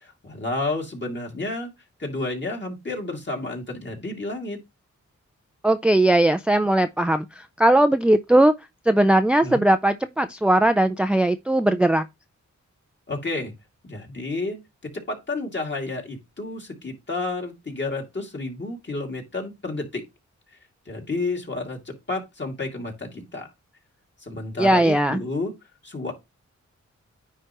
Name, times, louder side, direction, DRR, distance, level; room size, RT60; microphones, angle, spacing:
voice 1, 0.0-1.7 2.0-4.6 9.4-9.6 13.1-13.5 13.8-20.0 20.9-23.5 24.2-25.5 25.8-26.1, left 2 dB, 35° left, 2.4 m, -31 dB
voice 2, 5.6-8.5 8.9-12.1 24.6-25.2, right 1 dB, 5° right, 0.4 m, -19 dB
9.6 x 3.3 x 2.9 m
cardioid pair, 60°, 30 cm